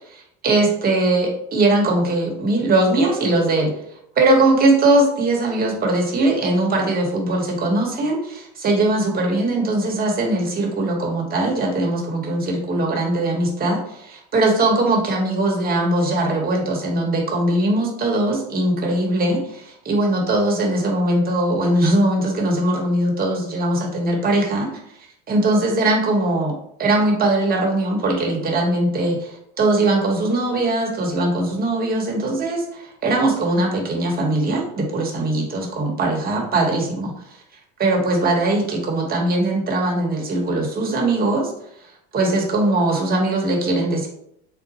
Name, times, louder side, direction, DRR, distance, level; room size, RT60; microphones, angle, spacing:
voice 1, 0.1-3.7 4.2-24.7 25.3-26.5 26.8-37.1 37.8-41.5 42.1-44.1, right 2 dB, 25° right, 0 dB, 1.0 m, -20 dB
3.8 x 2.1 x 4.0 m, 0.73 s
supercardioid pair, 115°, 34 cm